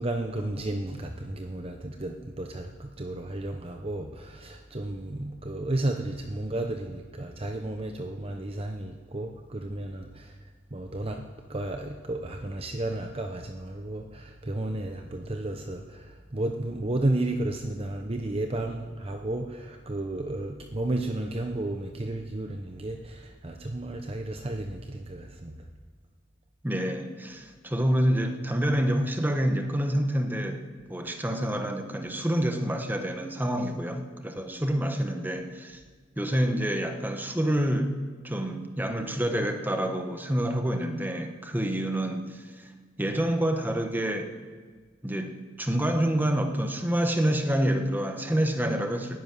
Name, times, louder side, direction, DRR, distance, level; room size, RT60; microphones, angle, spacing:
voice 1, 0.0-10.3 10.7-11.2 11.5-25.6, right 1 dB, 30° right, 4 dB, 0.8 m, -33 dB
voice 2, 26.6-35.8 36.2-37.9 38.2-42.7 43.0-44.4 45.0-49.2, right 1 dB, 10° right, 6 dB, 1.3 m, -27 dB
13.0 x 10.5 x 9.5 m, 1.5 s
head